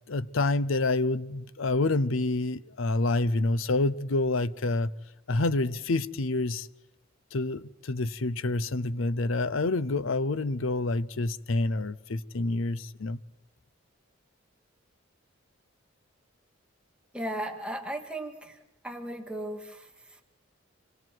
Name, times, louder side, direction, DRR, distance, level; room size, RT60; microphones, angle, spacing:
voice 1, 0.1-4.9 5.3-6.7 7.3-13.2, left 2 dB, 80° left, 0.7 m, -28 dB
voice 2, 17.1-18.6 18.8-20.2, right 1 dB, 5° right, 2.0 m, -36 dB
26.5 x 26.0 x 4.7 m
head